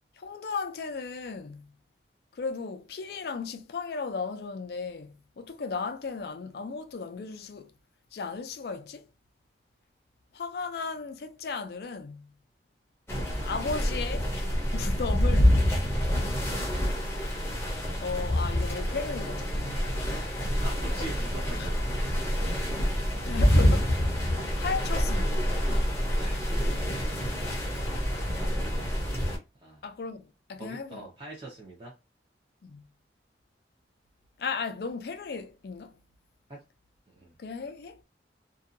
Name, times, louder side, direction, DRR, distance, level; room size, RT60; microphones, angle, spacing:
voice 1, 0.2-1.7 2.4-7.7 8.1-9.1 10.3-12.3 13.5-14.3 14.7-15.6 18.0-20.2 21.6-21.7 23.2-23.9 24.6-25.6 29.8-31.0 32.6-32.8 34.4-36.0 37.4-38.0, left 4 dB, 60° left, 0.4 m, -35 dB
sound 1, 13.1-29.4, equal, 15° left, 0.7 m, -27 dB
voice 2, 20.5-21.8 26.1-27.3 29.6-29.9 30.6-32.0 36.5-36.6 37.1-37.4, right 2 dB, 30° right, 0.7 m, -43 dB
2.6 x 2.3 x 2.5 m
head